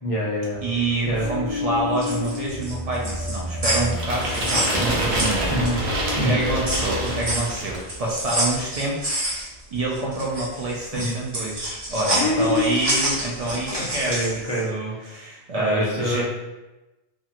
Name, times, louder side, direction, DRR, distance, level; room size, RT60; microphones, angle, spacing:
voice 1, 0.0-0.6 1.1-1.3 5.5-5.8 6.2-6.4 10.9-11.1 12.2-12.8 13.5-15.1 15.6-16.2, left 1 dB, 40° left, -4 dB, 0.6 m, -25 dB
sound 1, 0.5-7.4, left 2 dB, 85° left, 1.0 m, -31 dB
voice 2, 0.6-5.5 6.2-16.2, right 2 dB, 55° right, -4 dB, 0.4 m, -27 dB
sound 2, 1.8-5.9 6.3-14.4, right 1 dB, 25° right, 0.9 m, -28 dB
sound 3, 3.9-7.9, right 1 dB, 85° right, 1.0 m, -27 dB
2.9 x 2.5 x 2.4 m, 1.1 s
omnidirectional pair, 1.1 m